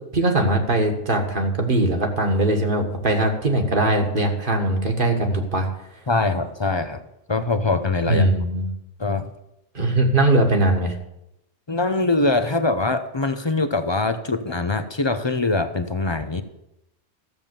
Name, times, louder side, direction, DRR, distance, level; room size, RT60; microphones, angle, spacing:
voice 1, 0.1-5.7 8.1-8.7 9.7-11.0, right 1 dB, 40° right, 3 dB, 1.8 m, -20 dB
voice 2, 6.1-7.0 7.3-8.3 9.0-9.3 11.7-16.4, left 3 dB, 30° left, 9 dB, 0.6 m, -23 dB
14.5 x 7.4 x 6.9 m, 0.86 s
omnidirectional pair, 1.3 m